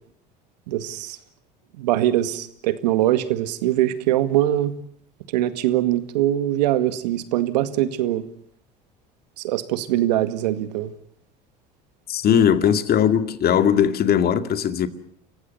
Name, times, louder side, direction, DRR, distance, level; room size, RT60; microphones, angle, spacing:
voice 1, 0.7-1.2 1.8-4.7 5.3-8.2 9.4-10.9 12.3-12.4, right 13 dB, 80° right, 2.0 m, -22 dB
voice 2, 12.1-14.9, left 8 dB, 50° left, 2.2 m, -19 dB
29.5 x 15.5 x 9.5 m
hypercardioid pair, 80°, 21 cm